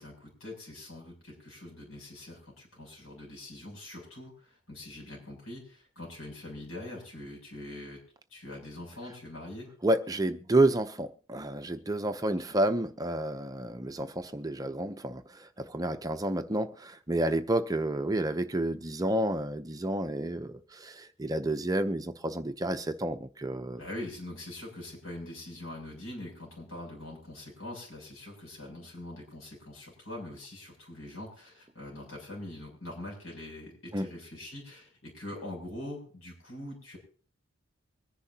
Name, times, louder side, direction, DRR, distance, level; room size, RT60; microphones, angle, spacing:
voice 1, 0.0-8.0 8.3-9.7 12.2-12.3 23.8-37.0, left 1 dB, 85° left, 0 dB, 7.7 m, -43 dB
voice 2, 9.8-23.8 33.9-34.1, right 1 dB, 20° right, 9 dB, 0.7 m, -30 dB
24.5 x 10.5 x 2.9 m, 0.41 s
head